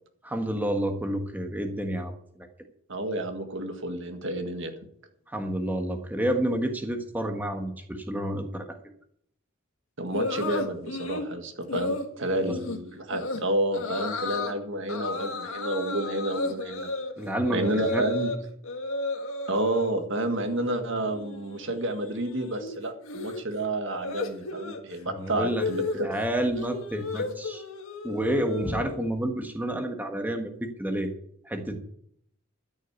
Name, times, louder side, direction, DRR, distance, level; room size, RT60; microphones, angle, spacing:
voice 1, 0.2-2.2 5.3-8.8 12.4-12.5 17.2-18.1 25.1-25.6 25.9-27.6 28.0-31.1 31.4-31.7, right 1 dB, 10° right, 5 dB, 1.5 m, -29 dB
voice 2, 2.9-4.7 10.0-16.9 17.5-18.3 19.5-26.1, right 1 dB, 60° right, 6 dB, 1.8 m, -30 dB
sound 1, 10.1-11.3 11.7-12.1 12.5-12.8 13.1-13.4 13.7-14.5 14.9-18.4 18.6-19.9 20.3-20.7 20.9-29.1, left 2 dB, 75° left, 1.6 m, -33 dB
13.5 x 6.5 x 8.2 m, 0.68 s
head